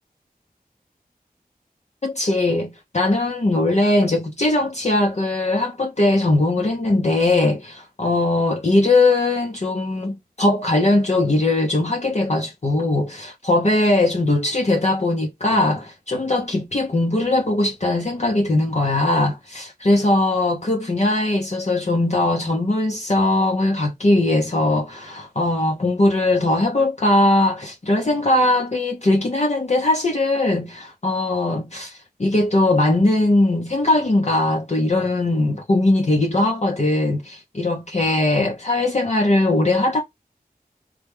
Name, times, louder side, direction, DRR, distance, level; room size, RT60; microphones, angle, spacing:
voice 1, 2.0-40.0, left 2 dB, 45° left, 0.6 m, -20 dB
3.2 x 2.2 x 3.3 m
wide cardioid pair, 50°, 16 cm